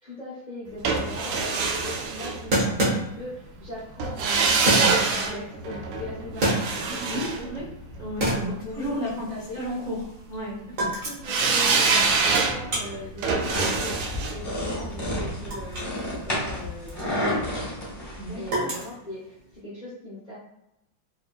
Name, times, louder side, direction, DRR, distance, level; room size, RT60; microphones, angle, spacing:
voice 1, 0.0-7.5 8.6-9.6 11.0-17.3 18.3-20.3, left 1 dB, 90° left, -8 dB, 0.3 m, -39 dB
sound 1, 0.8-3.0 4.0-8.2 11.2-16.2 16.5-16.6, right 4 dB, 90° right, 1.4 m, -25 dB
sound 2, 1.2-1.3 2.5-3.5 4.7-5.2 6.1-7.1 7.5-7.9 8.2-10.4 10.7-11.4 11.8-16.0 16.3-19.5, right 1 dB, 50° right, 1.0 m, -29 dB
voice 2, 6.7-7.6 8.0-9.3 9.5-10.0 10.3-10.9 18.2-18.8, equal, 70° right, -9 dB, 0.4 m, -33 dB
sound 3, 13.5-18.5, left 1 dB, 20° left, 0.8 m, -31 dB
3.3 x 2.7 x 2.2 m, 0.85 s
omnidirectional pair, 2.2 m